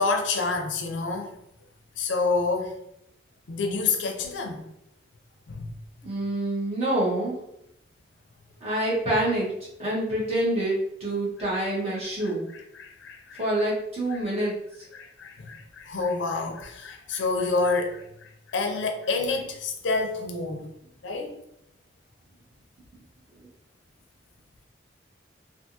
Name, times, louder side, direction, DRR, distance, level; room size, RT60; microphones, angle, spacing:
voice 1, 0.0-1.3 2.0-2.8 3.5-4.6 5.5-5.7 12.8-13.4 14.4-14.5 14.9-20.7 21.0-21.3, left 3 dB, 85° left, 0.5 m, -28 dB
voice 2, 6.0-7.4 8.6-9.5 9.8-12.5 13.4-14.9, right 1 dB, 35° right, 1.2 m, -27 dB
3.4 x 2.4 x 2.8 m
head